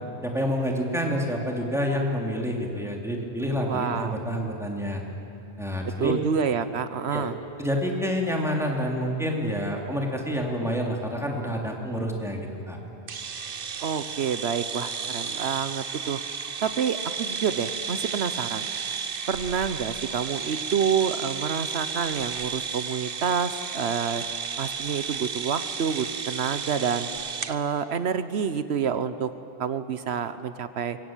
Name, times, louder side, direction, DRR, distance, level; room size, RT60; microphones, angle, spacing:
voice 1, 0.2-5.0 5.6-6.1 7.1-7.3 7.6-12.8, equal, 5° right, -1 dB, 3.3 m, -28 dB
voice 2, 3.7-4.2 6.0-7.4 13.8-16.2 16.6-18.7 19.3-24.2 24.6-27.1 27.5-29.3 29.6-31.0, right 7 dB, 90° right, 12 dB, 1.2 m, -28 dB
sound 1, 13.1-27.6, right 6 dB, 60° right, 1.2 m, -33 dB
24.0 x 22.5 x 9.1 m, 2.9 s
omnidirectional pair, 1.1 m